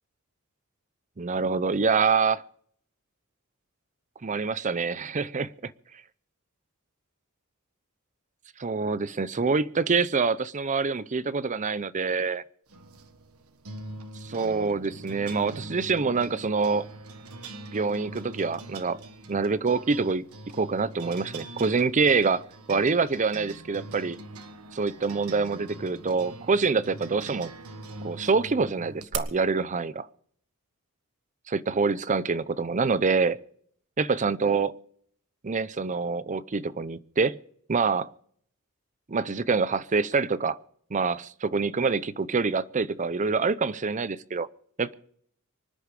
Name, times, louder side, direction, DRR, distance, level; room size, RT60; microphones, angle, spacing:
voice 1, 1.2-2.4 4.2-5.7 8.6-12.4 14.2-16.9 17.7-19.0 19.3-20.2 20.6-22.4 22.7-24.2 24.7-27.5 28.0-30.0 31.5-33.4 34.0-34.7 35.4-37.4 37.7-38.1 39.1-40.6 40.9-44.5 44.8-44.9, right 4 dB, 35° right, 0.6 m, -26 dB
sound 1, 12.7-29.2, right 3 dB, 85° right, 1.5 m, -42 dB
24.5 x 10.0 x 5.0 m
head